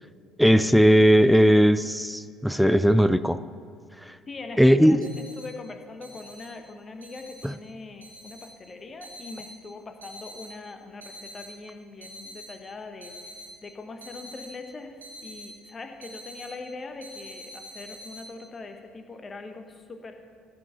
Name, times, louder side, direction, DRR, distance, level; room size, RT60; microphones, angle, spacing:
voice 1, 0.4-3.4 4.1-4.2 4.6-5.1 7.4-7.5, equal, ahead, 14 dB, 0.4 m, -18 dB
voice 2, 4.3-20.1, left 3 dB, 30° left, 6 dB, 1.2 m, -42 dB
sound 1, 5.0-5.5 6.0-6.5 7.0-7.5 8.0-8.5 9.0-9.5 10.0-10.5 11.0-11.5 12.0-12.5 13.0-13.5 14.0-14.5 15.0-15.5 16.0-16.5 17.0-18.2, equal, 85° right, 2.5 m, -44 dB
15.5 x 6.0 x 6.9 m, 2.3 s
figure-of-eight pair, 55°, 0 cm